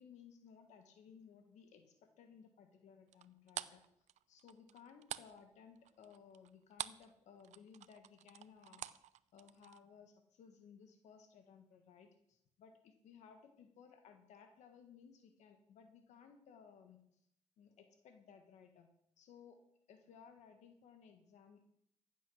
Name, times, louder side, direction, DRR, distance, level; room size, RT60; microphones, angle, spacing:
voice 1, 0.0-3.8 4.3-8.9 9.3-17.0 17.6-18.9 19.2-19.6 19.9-21.7, left 6 dB, 85° left, 6 dB, 1.5 m, -60 dB
sound 1, 3.1-7.1 7.4-9.8, right 12 dB, 80° right, 0.6 m, -47 dB
15.0 x 8.4 x 6.3 m, 0.74 s
cardioid pair, 75°, 12 cm